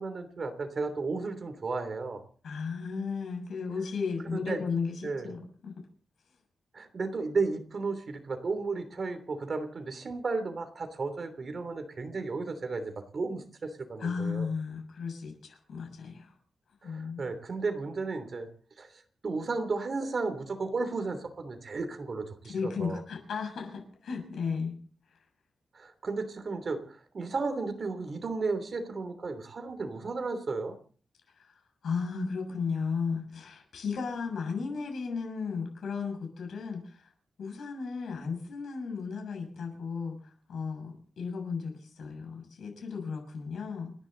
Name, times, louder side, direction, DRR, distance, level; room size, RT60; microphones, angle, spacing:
voice 1, 0.0-2.2 4.3-4.6 5.0-5.3 6.7-14.5 16.8-18.5 18.8-23.0 25.7-30.7, right 3 dB, 45° right, 7 dB, 3.2 m, -34 dB
voice 2, 2.4-5.8 14.0-16.3 16.8-17.2 22.5-24.7 31.4-31.5 31.8-37.0 37.4-40.2 40.5-43.9, left 5 dB, 85° left, 2 dB, 6.9 m, -35 dB
30.0 x 11.0 x 4.0 m, 0.43 s
wide cardioid pair, 135°, 0 cm